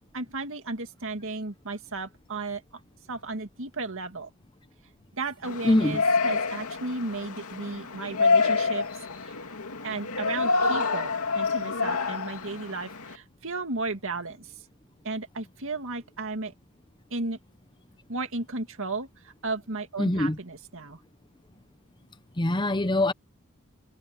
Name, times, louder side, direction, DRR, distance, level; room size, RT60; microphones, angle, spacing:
voice 1, 0.1-2.6 3.1-4.3 5.2-8.8 9.2-9.3 9.8-14.5 15.0-16.5 17.1-17.4 18.1-21.0, right 3 dB, 60° right, 2.3 m, -34 dB
Yell, 5.4-13.2, left 4 dB, 75° left, 2.6 m, -27 dB
voice 2, 5.6-6.0 20.0-20.4 22.4-23.1, left 1 dB, 20° left, 0.9 m, -24 dB
head